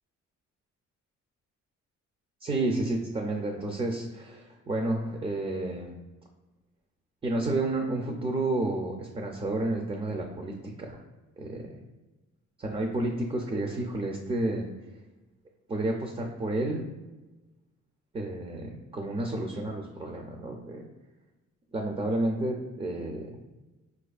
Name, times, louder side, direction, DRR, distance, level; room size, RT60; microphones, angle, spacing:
voice 1, 2.4-6.0 7.2-11.0 11.4-11.7 12.6-14.7 15.7-16.8 18.1-20.8 21.7-23.3, right 2 dB, 20° right, 1 dB, 0.3 m, -31 dB
4.7 x 2.4 x 2.3 m, 1.1 s
cardioid pair, 90°, 30 cm